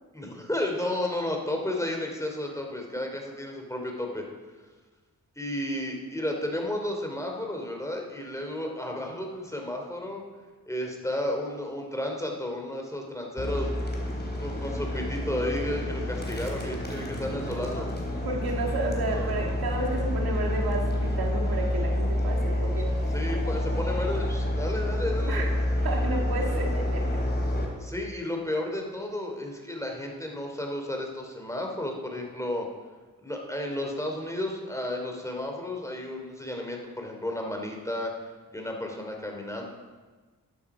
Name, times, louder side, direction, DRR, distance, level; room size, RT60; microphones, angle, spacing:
voice 1, 0.1-4.2 5.4-10.2 10.7-13.7 14.4-17.9 23.1-25.5 27.8-32.7 33.2-38.1 38.5-39.7, left 1 dB, 10° left, 1 dB, 3.2 m, -32 dB
sound 1, 13.4-27.7, left 1 dB, 30° left, 3.9 m, -28 dB
voice 2, 18.2-22.9 25.3-25.4 25.8-27.2, right 2 dB, 85° right, 0 dB, 2.2 m, -31 dB
12.5 x 11.5 x 5.0 m, 1.3 s
cardioid pair, 50°, 36 cm